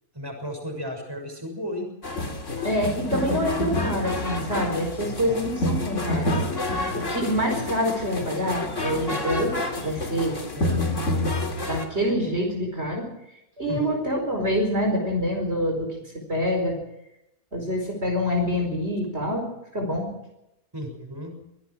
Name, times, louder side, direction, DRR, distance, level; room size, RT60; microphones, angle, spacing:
voice 1, 0.1-1.9 10.6-10.8 13.7-13.9 20.7-21.3, equal, 15° right, 3 dB, 6.4 m, -34 dB
sound 1, 2.0-11.9, left 1 dB, 55° left, 3.0 m, -28 dB
voice 2, 2.6-6.3 6.9-10.4 11.6-13.0 13.6-16.0 16.3-16.8 17.5-19.5 19.7-20.1, equal, 45° right, 1 dB, 5.1 m, -26 dB
24.5 x 18.0 x 6.2 m, 0.84 s
omnidirectional pair, 1.6 m